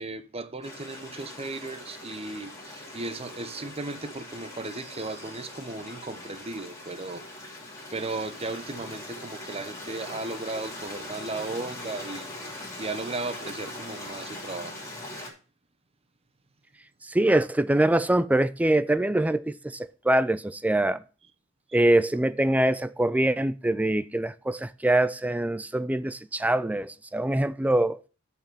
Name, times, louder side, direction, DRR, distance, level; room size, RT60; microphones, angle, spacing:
voice 1, 0.0-7.3 7.9-12.4 12.8-14.7 15.2-15.3, right 3 dB, 30° right, 0.8 m, -36 dB
Stream, 0.6-15.3, left 1 dB, 15° left, 3.0 m, -41 dB
voice 2, 17.1-21.0 21.7-28.0, right 1 dB, 5° right, 0.4 m, -24 dB
7.2 x 6.0 x 6.8 m
head